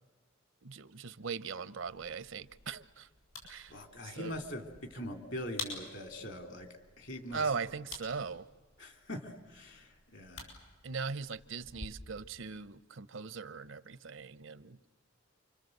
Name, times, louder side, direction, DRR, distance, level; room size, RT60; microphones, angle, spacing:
voice 1, 0.6-3.1 3.4-4.4 7.3-8.5 10.8-14.8, right 5 dB, 70° right, 16 dB, 0.8 m, -39 dB
sound 1, 1.9-11.9, left 4 dB, 85° left, 7.5 m, -50 dB
voice 2, 3.7-4.6 4.9-6.7 7.0-7.5 8.8-10.5, left 1 dB, 60° left, 6 dB, 3.1 m, -42 dB
28.5 x 25.5 x 7.9 m, 1.3 s
head